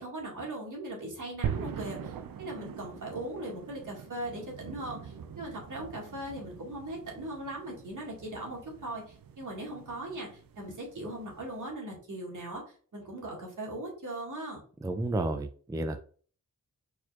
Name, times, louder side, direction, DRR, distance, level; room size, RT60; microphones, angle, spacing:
voice 1, 0.0-12.6 12.9-14.6, right 1 dB, 65° right, -2 dB, 2.0 m, -39 dB
sound 1, 1.4-11.7, right 8 dB, 90° right, 0.5 m, -42 dB
voice 2, 14.8-16.0, right 2 dB, 10° right, 7 dB, 0.3 m, -31 dB
4.5 x 4.3 x 2.4 m, 0.43 s
wide cardioid pair, 100°, 33 cm